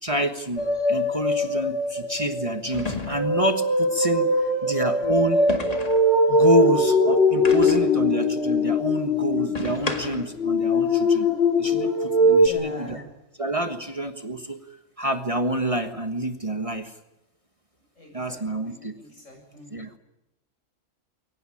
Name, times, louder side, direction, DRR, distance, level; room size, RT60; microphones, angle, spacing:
voice 1, 0.0-5.4 6.3-11.3 11.6-13.0 13.4-14.6 15.0-17.0 18.1-18.9 19.7-20.0, right 1 dB, 25° right, 7 dB, 1.5 m, -28 dB
sound 1, 0.5-0.7 2.7-3.5 5.5-6.1 7.4-8.0 9.5-10.4, left 3 dB, 30° left, 2.0 m, -32 dB
sound 2, 0.6-12.5, left 1 dB, 50° left, 2.7 m, -21 dB
voice 2, 4.5-4.9 12.4-13.0 18.0-19.7, left 1 dB, 70° left, 3 dB, 7.4 m, -41 dB
22.5 x 18.5 x 9.9 m, 0.90 s
omnidirectional pair, 1.3 m